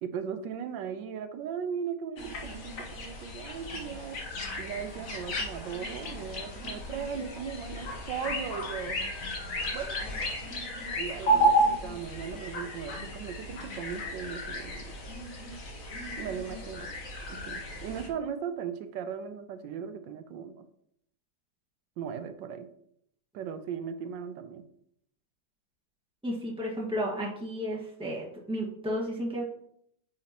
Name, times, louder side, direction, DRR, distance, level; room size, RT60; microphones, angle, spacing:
voice 1, 0.0-4.2 4.6-9.0 9.7-10.0 11.0-15.0 16.2-16.9 17.3-20.6 22.0-22.7 23.3-24.6, right 7 dB, 90° right, 9 dB, 1.3 m, -37 dB
sound 1, 2.2-18.1, right 1 dB, 50° left, 1.5 m, -33 dB
voice 2, 26.2-29.4, equal, 5° right, -3 dB, 1.4 m, -33 dB
8.7 x 5.2 x 2.9 m, 0.70 s
omnidirectional pair, 1.9 m